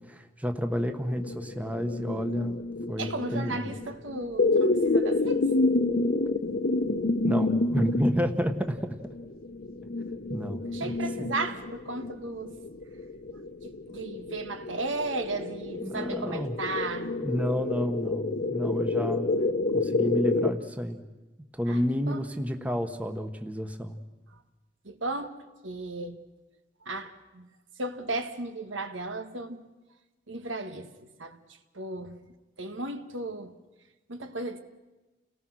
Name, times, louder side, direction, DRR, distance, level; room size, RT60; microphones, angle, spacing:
voice 1, 0.0-2.6 2.9-3.7 7.2-9.0 10.3-11.3 15.8-16.6 17.2-19.3 19.7-21.0 21.5-24.0, equal, 10° right, 1.2 m, -30 dB
sound 1, 0.7-20.5, left 2 dB, 50° left, 0.9 m, -29 dB
voice 2, 3.0-5.4 10.7-12.5 13.9-17.1 21.7-21.8 22.1-22.2 24.9-25.4 25.6-26.2 26.9-27.5 27.8-29.6 30.3-30.9 31.2-31.4 31.8-32.2 32.6-33.5 34.1-34.6, right 2 dB, 85° right, 1.6 m, -35 dB
29.5 x 18.5 x 6.3 m
head